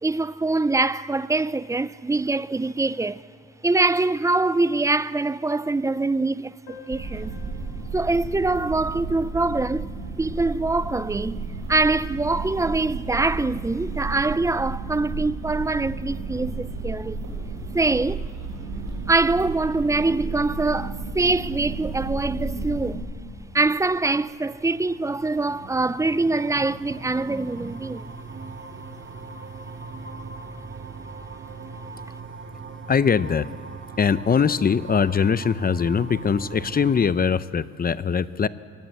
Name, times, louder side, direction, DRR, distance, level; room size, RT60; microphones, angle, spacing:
voice 1, 0.0-3.3 3.6-7.3 7.9-9.9 10.2-17.3 17.7-18.3 19.1-23.0 23.5-28.2, right 3 dB, 10° right, 0.5 m, -24 dB
Piano, 6.7-12.0 12.3-12.4 12.6-12.8 13.1-13.2 13.9-14.1, left 6 dB, 70° left, 3.8 m, -53 dB
washington square holophone binaural, 6.9-22.9, right 3 dB, 85° right, 5.9 m, -32 dB
sound 1, 23.0-37.1, right 4 dB, 40° right, 1.7 m, -40 dB
voice 2, 32.9-33.5 34.0-38.5, left 6 dB, 30° left, 0.7 m, -22 dB
24.0 x 18.0 x 7.8 m
cardioid pair, 90°, 30 cm